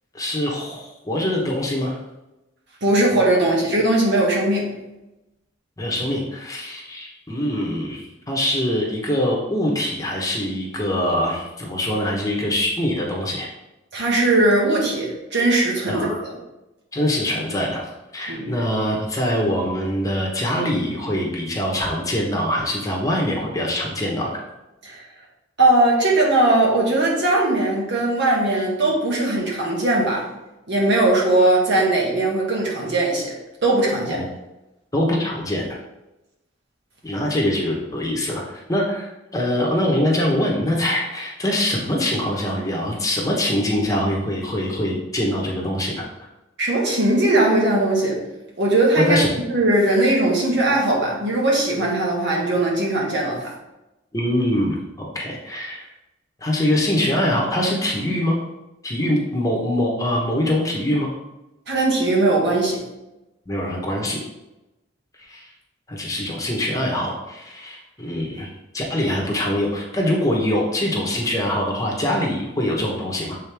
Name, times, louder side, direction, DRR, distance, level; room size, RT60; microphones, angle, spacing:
voice 1, 0.1-2.0 5.8-13.5 15.9-16.2 16.9-24.4 34.1-34.2 34.9-35.6 37.0-46.0 49.0-49.3 54.1-55.9 56.4-58.4 58.8-61.1 63.5-64.2 65.2-65.5 65.9-68.5 68.7-73.4, left 1 dB, 15° left, -2 dB, 1.1 m, -23 dB
voice 2, 2.8-4.7 13.9-16.3 18.3-18.5 24.8-25.0 25.6-30.2 30.7-33.3 33.6-34.2 46.6-48.2 48.6-49.2 49.5-53.5 61.7-62.8, right 2 dB, 60° right, -3 dB, 1.7 m, -19 dB
7.6 x 4.0 x 3.5 m, 0.97 s
head